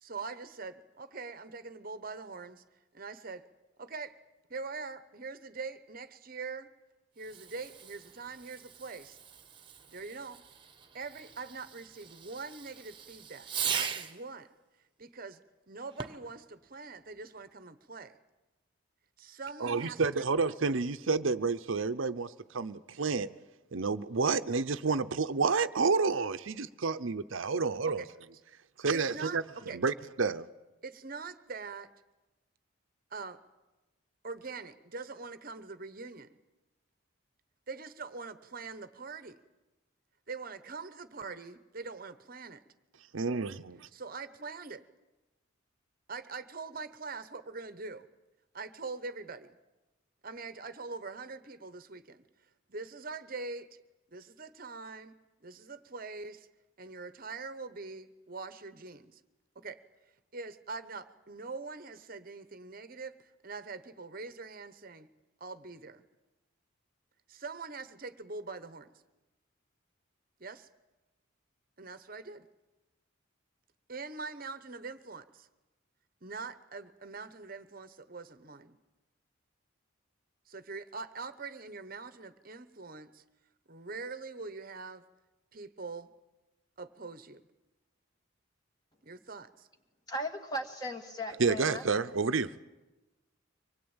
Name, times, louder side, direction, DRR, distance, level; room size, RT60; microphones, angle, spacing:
voice 1, 0.0-2.6 2.9-3.4 3.8-4.1 4.5-6.7 7.2-9.2 9.9-10.4 10.9-14.5 15.0-15.4 15.7-18.2 19.2-20.2 26.8-26.9 28.0-28.1 28.9-29.4 29.7-29.8 30.8-31.9 33.1-33.4 34.2-36.4 37.7-39.4 40.3-42.6 43.9-44.8 46.1-48.1 48.5-49.6 50.2-52.2 52.7-53.7 54.1-56.5 56.8-59.2 59.5-59.8 60.3-65.1 65.4-66.0 67.3-68.9 70.4-70.7 71.8-72.5 73.9-75.5 76.2-78.8 80.5-83.2 83.7-85.0 85.5-86.1 86.8-87.4 89.0-89.7, right 4 dB, 45° right, 1.0 m, -43 dB
Fireworks, 7.2-14.3 15.9-16.4, right 7 dB, 25° right, 1.2 m, -40 dB
voice 2, 19.6-23.3 23.7-28.0 28.8-29.4 29.7-30.5 43.1-43.9 91.4-92.5, right 4 dB, 70° right, 0.7 m, -30 dB
voice 3, 90.1-91.8, equal, 20° left, 1.9 m, -37 dB
24.5 x 20.0 x 8.9 m
head